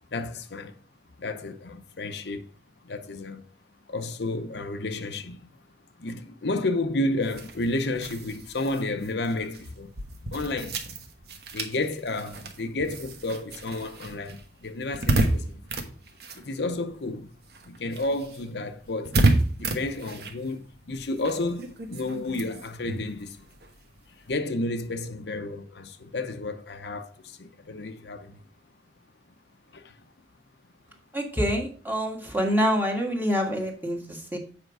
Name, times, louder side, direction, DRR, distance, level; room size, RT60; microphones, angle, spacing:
voice 1, 0.1-0.7 1.2-2.5 2.8-3.4 3.9-5.5 6.0-9.9 10.3-10.8 11.5-15.6 16.4-17.3 17.6-19.2 19.6-23.4 24.2-28.4 29.7-30.0, left 2 dB, 70° left, 0.7 m, -31 dB
sound 1, 7.2-17.1 17.4-24.4, right 2 dB, 65° right, 1.2 m, -31 dB
voice 2, 31.1-34.4, equal, 10° right, 1.6 m, -26 dB
8.0 x 5.2 x 4.7 m
head